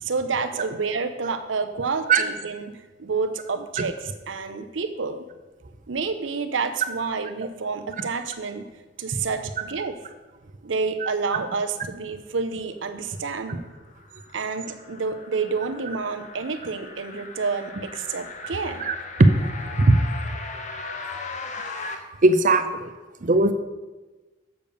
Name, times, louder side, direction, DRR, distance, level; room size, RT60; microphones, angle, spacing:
voice 1, 0.0-5.2 5.9-8.7 9.0-9.9 10.6-13.7 14.3-18.8, right 4 dB, 85° right, 9 dB, 0.7 m, -29 dB
sound 1, 13.6-22.0, left 4 dB, 40° left, 0.8 m, -38 dB
voice 2, 18.8-19.3 19.8-20.0 22.2-22.9 23.2-23.5, right 2 dB, 45° right, 9 dB, 0.6 m, -19 dB
7.0 x 6.8 x 5.3 m, 1.2 s
head